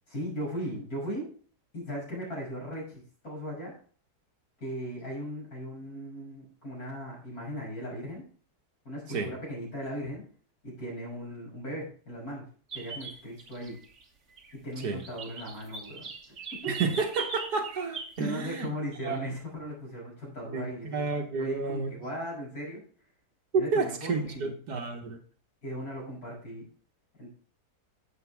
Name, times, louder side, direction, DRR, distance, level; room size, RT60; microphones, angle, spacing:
voice 1, 0.1-1.3 1.7-3.7 4.6-8.3 8.8-10.2 10.6-13.8 14.5-16.1 16.6-16.7 18.2-21.0 21.4-22.8 23.5-24.5 25.6-26.7 27.2-27.3, equal, 60° left, -4 dB, 6.8 m, -38 dB
sound 1, 12.7-14.0 14.4-14.5 14.8-18.2, right 4 dB, 45° right, 1.7 m, -41 dB
voice 2, 16.7-19.4 20.5-21.9 23.5-25.2, right 4 dB, 70° right, 4 dB, 1.8 m, -31 dB
11.5 x 7.9 x 3.5 m, 0.42 s
omnidirectional pair, 1.8 m